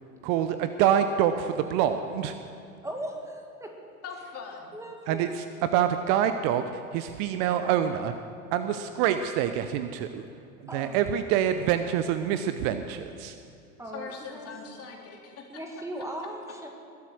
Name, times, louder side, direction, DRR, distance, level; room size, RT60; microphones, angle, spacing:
voice 1, 0.2-2.4 5.1-5.4 5.7-8.1 8.5-10.3 10.7-13.3, right 9 dB, 45° right, 9 dB, 0.8 m, -26 dB
voice 2, 2.8-3.8 4.7-5.3 10.7-11.0 13.8-14.5 15.5-16.7, right 1 dB, 5° right, 2 dB, 2.1 m, -38 dB
voice 3, 4.0-4.7 13.9-15.6 16.2-16.3, left 5 dB, 35° left, 1 dB, 2.9 m, -41 dB
21.0 x 8.4 x 6.3 m, 2.4 s
figure-of-eight pair, 85°, 43 cm